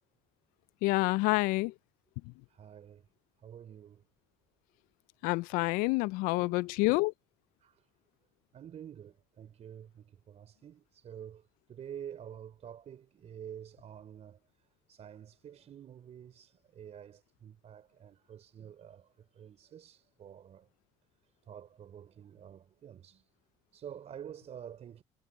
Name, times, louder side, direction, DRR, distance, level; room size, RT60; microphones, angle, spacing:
voice 1, 0.8-1.7 5.2-7.1, left 23 dB, 80° left, 0.4 m, -28 dB
voice 2, 2.5-3.0 3.4-4.0 6.3-6.7 7.6-7.8 8.5-11.4 11.7-14.4 14.9-19.1 19.4-20.7 21.5-23.2 23.7-25.0, right 9 dB, 50° right, 3.8 m, -48 dB
supercardioid pair, 80°, 14 cm